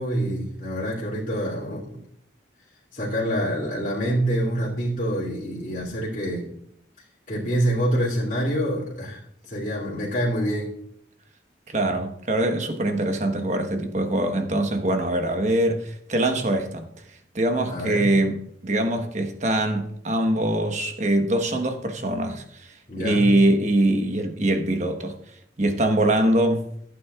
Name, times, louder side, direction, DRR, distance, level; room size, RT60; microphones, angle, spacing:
voice 1, 0.0-2.0 2.9-6.5 7.3-9.2 9.5-10.7 17.7-18.1 22.9-23.4, equal, 45° left, 2.6 m, -26 dB
voice 2, 11.7-16.9 17.3-18.4 18.6-25.2 25.6-26.6, right 1 dB, 40° right, 1.2 m, -23 dB
15.5 x 8.6 x 2.4 m
head